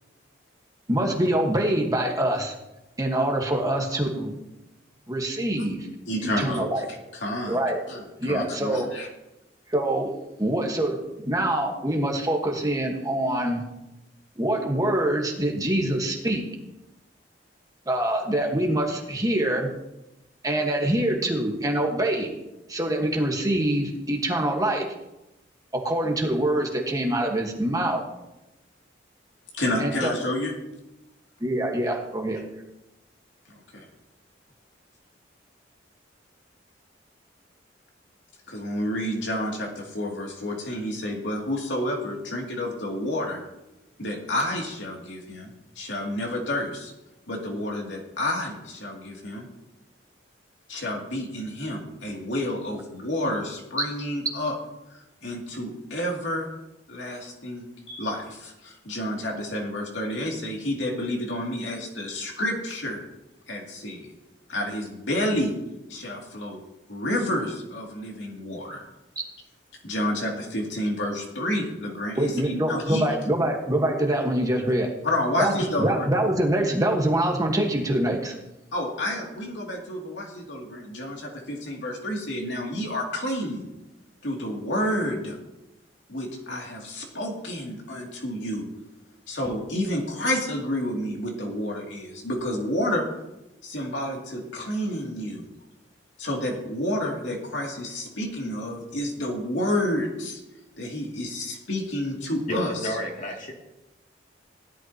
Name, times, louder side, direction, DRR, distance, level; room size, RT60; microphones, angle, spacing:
voice 1, 0.9-2.5 3.0-4.4 5.1-5.9 6.2-6.8 7.5-7.8 8.2-8.9 9.7-10.1 10.4-13.6 14.4-16.4 17.9-19.7 20.4-22.3 22.7-24.9 25.7-28.0 29.8-30.1 31.4-32.4 72.2-74.9 75.4-75.5 75.8-78.3, right 1 dB, 20° right, 1 dB, 1.4 m, -25 dB
voice 2, 6.1-6.7 7.1-7.6 7.9-9.1 29.5-30.5 33.7-33.9 38.5-43.4 44.0-46.9 47.3-49.5 50.7-54.5 54.9-56.5 56.9-63.0 63.5-64.1 64.5-65.5 65.9-66.6 66.9-68.9 69.8-73.0 75.0-75.9 78.7-83.7 84.2-85.4 86.1-88.7 89.3-93.1 93.6-95.4 96.2-100.4 100.8-102.9, left 1 dB, 75° left, -1 dB, 2.6 m, -30 dB
voice 3, 102.5-103.5, equal, 45° left, -1 dB, 2.6 m, -30 dB
16.5 x 11.5 x 2.9 m, 0.95 s
head